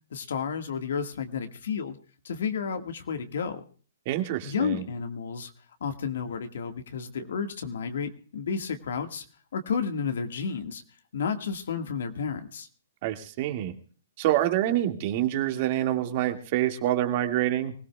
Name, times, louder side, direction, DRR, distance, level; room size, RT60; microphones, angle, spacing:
voice 1, 0.1-2.0 2.2-3.6 4.4-5.5 5.8-9.2 9.5-10.8 11.1-12.7, left 6 dB, 70° left, 7 dB, 1.7 m, -31 dB
voice 2, 4.1-4.9 13.0-13.7 14.2-17.7, right 13 dB, 45° right, 5 dB, 2.0 m, -26 dB
24.5 x 17.0 x 2.3 m, 0.40 s
hypercardioid pair, 135°, 0 cm